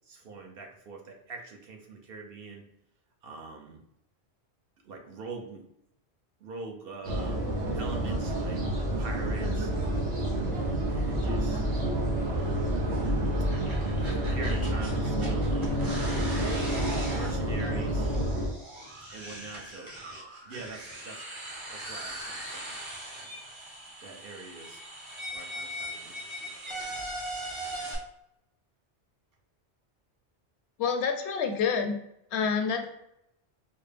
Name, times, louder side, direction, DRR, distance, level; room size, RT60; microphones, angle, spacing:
voice 1, 0.1-2.6 3.2-3.8 4.9-5.6 6.4-7.5 7.7-8.6 9.0-10.0 10.9-11.6 12.2-12.7 14.3-16.6 17.1-18.1 19.1-19.9 20.5-21.2 21.7-22.8 23.1-23.2 24.0-24.8 25.3-26.5, right 3 dB, 60° right, 1 dB, 0.8 m, -43 dB
sound 1, 7.0-18.5, right 1 dB, 85° right, 1.5 m, -29 dB
sound 2, 13.4-27.9, right 1 dB, 30° right, 0.8 m, -40 dB
voice 2, 30.8-32.0 32.3-32.9, left 6 dB, 75° left, 6 dB, 0.8 m, -27 dB
4.1 x 2.1 x 3.3 m, 0.78 s
omnidirectional pair, 1.1 m